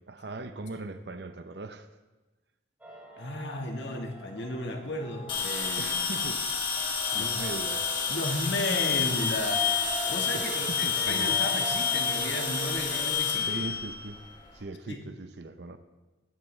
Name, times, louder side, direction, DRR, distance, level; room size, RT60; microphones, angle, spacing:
voice 1, 0.1-1.9 5.8-6.5 7.1-8.4 10.0-11.4 13.5-14.2 14.5-15.8, right 2 dB, 60° right, 0.7 m, -40 dB
sound 1, 2.8-13.1, right 2 dB, 10° right, 2.9 m, -42 dB
voice 2, 3.2-5.9 7.1-7.4 8.1-9.7 10.1-13.6 14.9-15.0, left 1 dB, 70° left, 1.6 m, -34 dB
sound 2, 5.3-14.5, left 6 dB, 25° left, 1.9 m, -29 dB
18.5 x 13.0 x 3.2 m
head